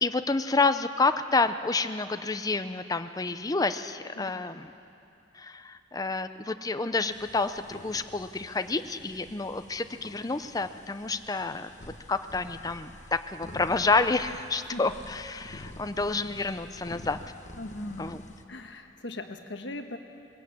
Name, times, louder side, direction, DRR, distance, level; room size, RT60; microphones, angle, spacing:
voice 1, 0.0-4.7 5.3-11.7 12.1-17.2 18.0-18.2, left 3 dB, 20° left, 10 dB, 0.6 m, -29 dB
sound 1, 7.1-18.4, left 1 dB, 40° left, 1.2 m, -48 dB
voice 2, 17.6-18.1 18.5-20.0, left 1 dB, 70° left, 6 dB, 1.4 m, -39 dB
21.0 x 16.0 x 8.4 m, 2.8 s
head